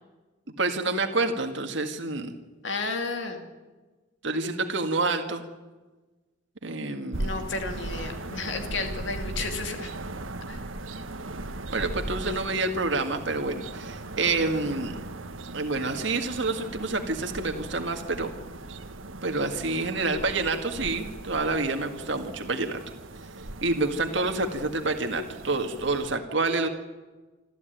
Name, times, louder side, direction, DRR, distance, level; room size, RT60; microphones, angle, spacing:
voice 1, 0.6-2.3 4.2-5.4 6.6-7.4 11.7-15.0 15.5-18.3 19.2-22.8 23.6-26.7, right 3 dB, 65° right, 5 dB, 1.8 m, -28 dB
voice 2, 2.6-3.4 7.2-9.9 10.5-10.6 12.2-12.3, left 3 dB, 65° left, 5 dB, 2.5 m, -32 dB
sound 1, 7.1-26.2, right 2 dB, 85° right, 1.5 m, -38 dB
26.5 x 13.5 x 9.2 m, 1.2 s
head